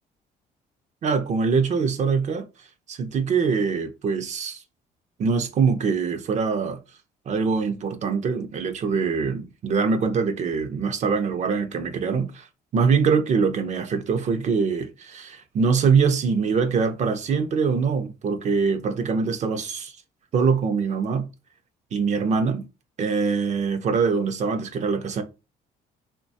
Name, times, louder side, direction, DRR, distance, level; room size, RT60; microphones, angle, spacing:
voice 1, 1.0-2.4 2.9-4.6 5.2-6.8 7.3-12.5 12.7-19.9 20.3-21.3 21.9-22.7 23.0-25.2, right 5 dB, 45° right, 0.5 m, -23 dB
3.0 x 2.2 x 2.6 m
cardioid pair, 110°, 17 cm